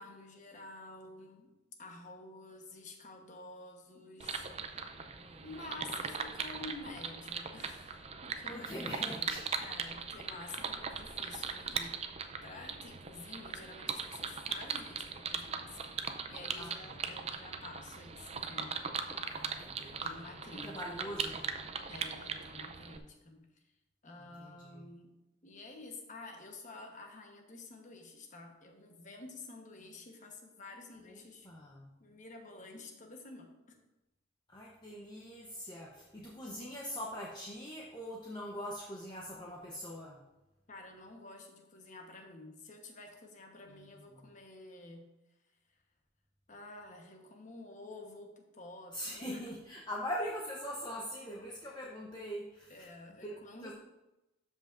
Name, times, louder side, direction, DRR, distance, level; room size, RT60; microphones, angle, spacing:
voice 1, 0.0-4.9 5.4-12.0 12.4-15.8 16.3-19.1 20.0-21.3 21.9-23.4 24.0-25.1 25.4-31.5 32.0-33.7 40.7-45.1 46.5-49.4 52.7-53.7, left 2 dB, 40° left, 3 dB, 1.1 m, -50 dB
sound 1, 4.2-23.0, right 5 dB, 30° right, 0.5 m, -40 dB
voice 2, 5.0-5.6 8.5-9.4 16.6-16.9 19.3-20.3 20.6-21.7 24.2-24.9 31.1-31.2 31.4-31.9 34.5-40.2 44.1-44.3 48.9-52.9 53.2-53.7, equal, 20° left, -3 dB, 0.9 m, -43 dB
12.5 x 5.3 x 2.6 m, 0.97 s
head